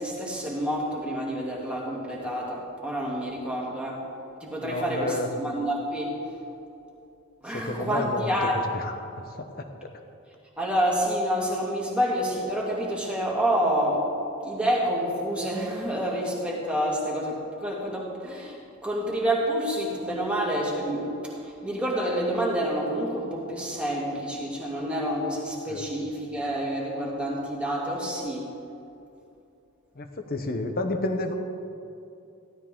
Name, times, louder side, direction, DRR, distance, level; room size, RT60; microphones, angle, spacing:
voice 1, 0.0-4.0 4.4-6.2 7.4-8.7 10.6-14.1 14.4-28.5, equal, 5° right, -4 dB, 2.1 m, -28 dB
voice 2, 4.6-5.3 7.5-8.3 8.7-8.9 9.4-9.9 25.7-25.9 29.9-31.3, left 2 dB, 45° left, 6 dB, 1.0 m, -31 dB
15.0 x 12.5 x 3.7 m, 2.7 s
head